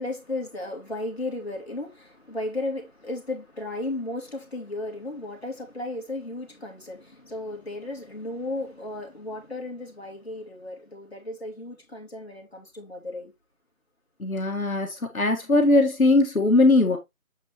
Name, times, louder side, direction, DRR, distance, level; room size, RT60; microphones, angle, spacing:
voice 1, 0.0-13.3, left 2 dB, 45° left, 2.2 m, -34 dB
voice 2, 14.2-17.0, left 2 dB, 75° left, 1.7 m, -20 dB
7.4 x 4.8 x 3.0 m
figure-of-eight pair, 175°, 42 cm